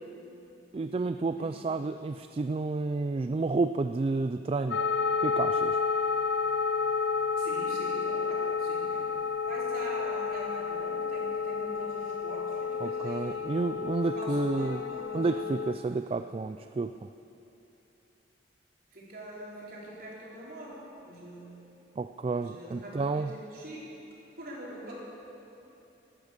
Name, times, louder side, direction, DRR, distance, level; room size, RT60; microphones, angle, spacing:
voice 1, 0.7-4.8 5.2-5.8 12.8-14.8 15.1-16.9 22.0-23.4, right 3 dB, 30° right, 9 dB, 0.3 m, -30 dB
sound 1, 4.7-15.7, left 5 dB, 80° left, 0.7 m, -31 dB
voice 2, 7.4-9.2 9.4-13.4 14.0-15.4 18.9-21.6 22.3-23.8 24.4-24.9, right 1 dB, 50° right, -5 dB, 4.3 m, -44 dB
17.0 x 12.5 x 6.7 m, 3.0 s
head